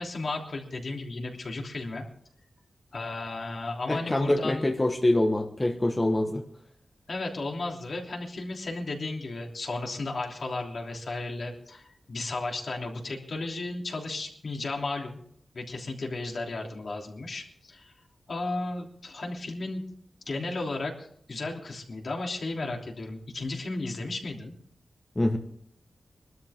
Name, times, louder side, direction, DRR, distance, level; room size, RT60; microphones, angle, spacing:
voice 1, 0.0-2.0 2.9-4.7 7.1-15.2 15.5-17.9 18.3-19.8 20.3-24.5, left 2 dB, 60° left, 0 dB, 3.2 m, -34 dB
voice 2, 3.9-6.5 25.2-25.4, left 1 dB, 20° left, 4 dB, 1.2 m, -25 dB
22.5 x 13.0 x 3.6 m, 0.67 s
wide cardioid pair, 110°, 0 cm